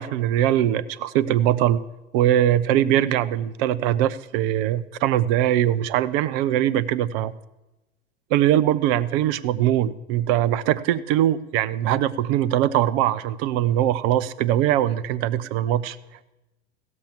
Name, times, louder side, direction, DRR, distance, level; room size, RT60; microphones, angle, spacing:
voice 1, 0.0-1.8 2.1-7.3 8.3-16.0, right 12 dB, 60° right, 17 dB, 0.7 m, -21 dB
16.0 x 6.2 x 7.3 m, 1.0 s
hypercardioid pair, 85°, 32 cm